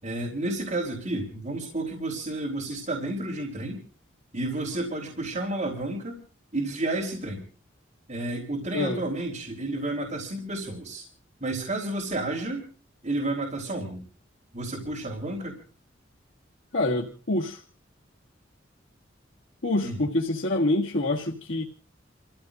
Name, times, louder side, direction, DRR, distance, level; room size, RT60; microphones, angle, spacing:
voice 1, 0.0-3.8 4.3-6.2 6.5-7.4 8.1-11.1 11.4-12.7 13.0-14.0 14.5-15.5 19.8-20.0, right 2 dB, 40° right, -1 dB, 3.7 m, -31 dB
voice 2, 8.7-9.0 16.7-17.6 19.6-21.6, left 2 dB, 75° left, -3 dB, 1.8 m, -26 dB
29.5 x 15.5 x 2.6 m, 0.39 s
head